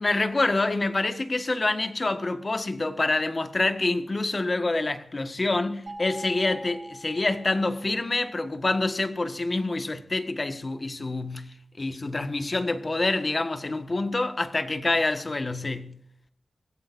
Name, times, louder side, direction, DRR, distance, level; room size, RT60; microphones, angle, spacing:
voice 1, 0.0-11.5 11.8-15.9, left 2 dB, 40° left, 1.5 m, -27 dB
sound 1, 5.9-8.1, right 1 dB, 65° right, 6.8 m, -43 dB
24.5 x 16.0 x 2.7 m
cardioid pair, 60°, 0 cm